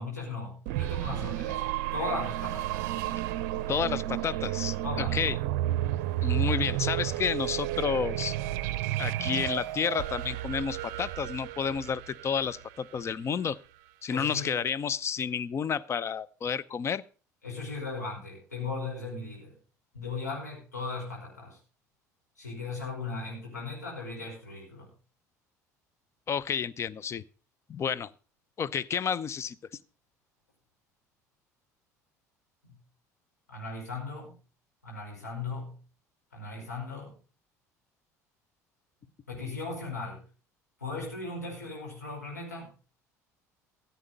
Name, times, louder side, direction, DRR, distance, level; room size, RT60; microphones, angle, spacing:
voice 1, 0.0-2.9 4.8-5.2 14.1-14.6 17.4-19.5 19.9-21.6 22.4-24.9 32.6-32.8 33.5-34.4 34.8-35.8 36.3-37.1 39.3-40.2 40.8-42.7, left 3 dB, 85° left, -3 dB, 5.1 m, -37 dB
sound 1, 0.7-13.4, right 14 dB, 60° right, 0.6 m, -32 dB
voice 2, 3.7-4.8 5.1-5.4 6.2-8.3 9.0-13.6 14.0-17.0 26.3-27.2 27.7-28.1 28.6-29.6, left 7 dB, 30° left, 18 dB, 0.6 m, -30 dB
14.5 x 8.1 x 5.2 m, 0.36 s
figure-of-eight pair, 60°, 9 cm